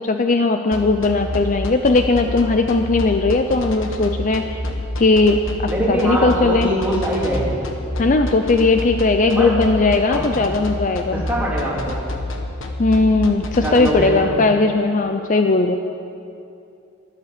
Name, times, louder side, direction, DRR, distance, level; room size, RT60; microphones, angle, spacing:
voice 1, 0.0-4.6 5.0-6.7 8.0-11.2 12.8-15.8, left 3 dB, 35° left, 6 dB, 0.5 m, -18 dB
sound 1, 0.7-13.9, left 1 dB, 65° left, 1.2 m, -28 dB
voice 2, 5.7-7.6 9.4-9.6 10.1-10.3 11.1-12.0 13.6-14.4, right 1 dB, 5° right, -6 dB, 2.9 m, -23 dB
12.5 x 12.5 x 6.7 m, 2.6 s
head